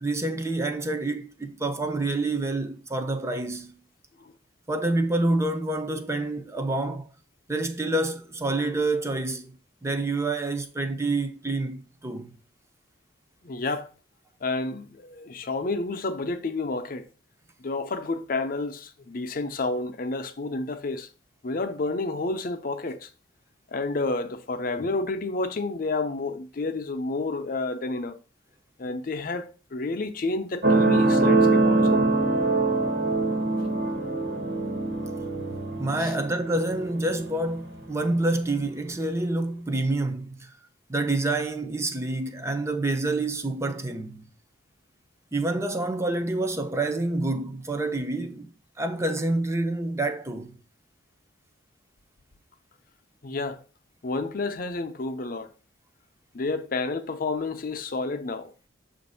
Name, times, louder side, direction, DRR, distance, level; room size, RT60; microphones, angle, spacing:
voice 1, 0.0-3.8 4.7-7.1 7.5-9.5 9.8-12.3 35.8-40.5 40.9-44.3 45.3-48.5 48.8-50.6, right 2 dB, 15° right, 0.5 m, -27 dB
voice 2, 13.4-13.9 14.4-17.1 17.6-21.1 21.4-23.1 23.7-28.2 28.8-31.9 36.0-36.1 53.2-53.6 54.0-55.5 56.3-58.5, left 3 dB, 50° left, 0.6 m, -30 dB
sound 1, 30.6-37.7 38.5-38.6, right 2 dB, 65° right, 1.3 m, -23 dB
6.9 x 2.6 x 5.4 m
head